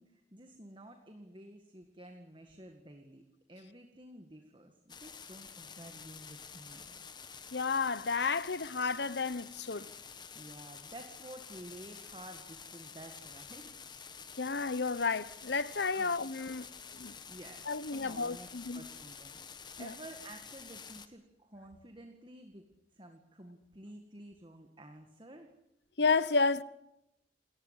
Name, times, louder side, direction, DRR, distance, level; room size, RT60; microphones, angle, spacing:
voice 1, 0.0-3.2 3.5-7.0 10.3-13.8 15.9-16.2 17.3-18.5 18.7-19.4 19.8-22.7 22.9-25.5, right 1 dB, 30° right, 1.9 m, -51 dB
sound 1, 4.9-21.1, left 6 dB, 25° left, 1.5 m, -49 dB
voice 2, 7.5-9.9 14.4-17.1 17.7-18.9 19.8-19.9 26.0-26.6, left 4 dB, 75° left, 1.0 m, -32 dB
28.5 x 14.5 x 9.9 m
head